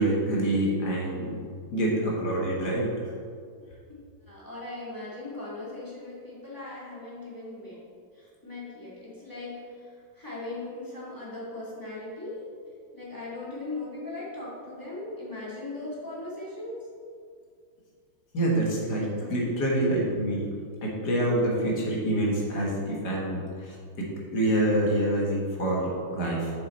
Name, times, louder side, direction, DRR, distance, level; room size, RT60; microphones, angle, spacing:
voice 1, 0.0-1.4 1.7-2.9 18.3-20.5 20.8-26.5, right 1 dB, 55° left, -3 dB, 2.0 m, -26 dB
voice 2, 4.2-7.8 8.1-12.4 12.9-16.9, left 2 dB, 10° left, -8 dB, 2.0 m, -39 dB
7.4 x 6.4 x 4.2 m, 2.1 s
omnidirectional pair, 2.2 m